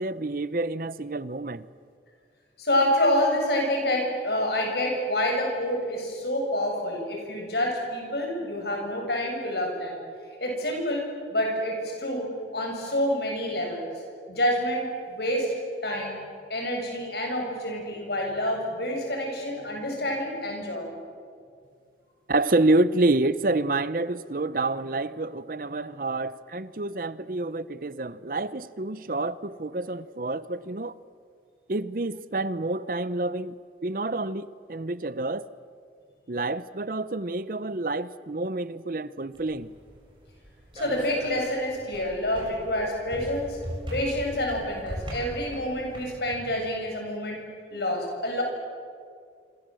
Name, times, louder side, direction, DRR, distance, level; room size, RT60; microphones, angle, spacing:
voice 1, 0.0-1.7 22.3-31.0 31.7-33.5 33.8-35.5 36.3-39.7, right 2 dB, 50° right, 16 dB, 0.7 m, -28 dB
voice 2, 2.6-10.0 10.4-14.0 14.3-15.6 15.8-16.2 16.5-20.9 40.7-43.6 43.9-47.4 47.7-48.4, left 1 dB, 65° left, 1 dB, 7.3 m, -28 dB
sound 1, 39.3-46.5, equal, 30° right, 7.6 m, -40 dB
26.5 x 26.5 x 7.7 m, 2.2 s
head